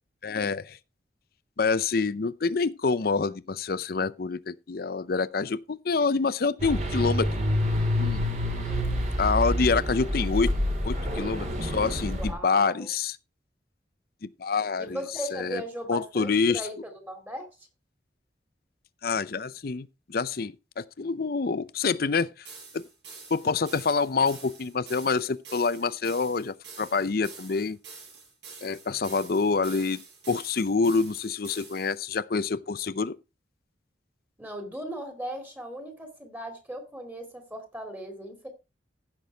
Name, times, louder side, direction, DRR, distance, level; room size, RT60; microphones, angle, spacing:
voice 1, 0.2-0.8 1.6-7.3 8.0-8.3 9.2-10.5 10.8-13.2 14.2-15.0 15.3-15.6 15.9-16.6 19.0-22.5 22.7-22.8 23.3-27.8 28.6-30.0 30.3-33.2, left 4 dB, 55° left, 0.6 m, -27 dB
sound 1, 6.6-12.3, left 1 dB, 40° right, 2.9 m, -27 dB
voice 2, 8.7-9.1 12.0-12.9 14.8-17.5 34.4-38.5, equal, 10° right, 2.6 m, -38 dB
sound 2, 22.4-32.0, right 5 dB, 70° right, 6.8 m, -47 dB
15.5 x 6.2 x 3.5 m
head